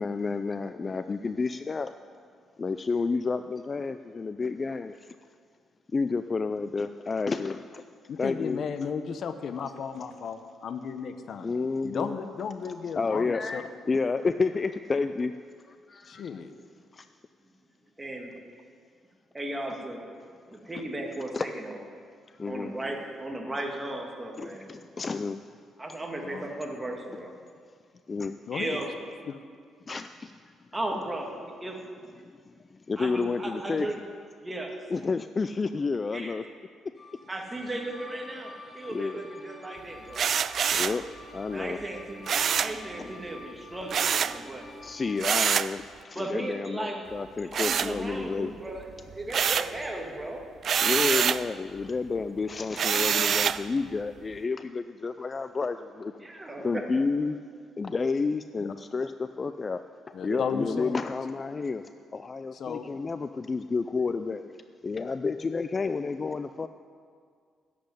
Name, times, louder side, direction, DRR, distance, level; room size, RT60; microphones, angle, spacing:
voice 1, 0.0-1.9 2.6-4.9 5.9-7.8 8.2-8.6 11.4-12.1 13.0-15.3 15.9-16.3 17.0-17.1 21.3-21.5 22.4-22.7 24.4-25.4 28.1-28.4 29.9-30.1 32.9-33.9 34.9-36.4 38.9-39.2 40.7-41.0 41.3-41.8 43.0-43.1 44.8-48.5 50.8-56.1 56.6-57.4 57.8-59.8 60.2-61.8 62.1-64.5 64.8-66.7, left 4 dB, 35° left, 10 dB, 0.4 m, -30 dB
voice 2, 8.1-11.5 11.8-13.6 16.1-16.5 26.2-26.5 28.5-28.8 29.3-29.4 60.1-61.0 62.5-62.9, left 6 dB, 60° left, 9 dB, 0.8 m, -34 dB
voice 3, 18.0-18.4 19.3-20.1 20.5-21.8 22.5-24.8 25.8-27.4 28.5-29.0 30.7-31.8 33.0-34.0 34.4-34.8 36.1-36.4 37.3-40.3 41.5-42.2 42.5-44.7 46.1-47.0 47.6-50.4 56.2-57.0 60.3-60.7, right 1 dB, 15° right, 2 dB, 2.0 m, -36 dB
sound 1, 37.0-45.3, left 2 dB, 15° left, 1.9 m, -48 dB
sound 2, 40.1-41.0 42.3-42.8 43.9-44.4 45.2-45.7 47.5-48.4 48.8-49.8 50.6-51.5 52.8-53.6, right 7 dB, 55° right, 0.4 m, -26 dB
10.5 x 7.7 x 9.8 m, 2.1 s
cardioid pair, 90°, 0 cm